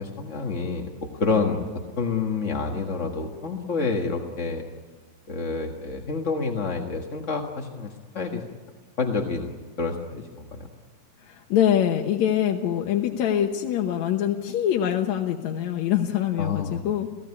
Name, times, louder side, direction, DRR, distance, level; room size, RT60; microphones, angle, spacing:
voice 1, 0.0-1.6 2.0-4.6 5.3-8.4 9.0-9.5 9.8-10.7 16.4-16.8, left 4 dB, 40° left, 2 dB, 1.1 m, -28 dB
voice 2, 11.2-17.1, left 10 dB, 70° left, 2 dB, 2.3 m, -24 dB
29.0 x 16.5 x 9.8 m, 1.4 s
omnidirectional pair, 3.6 m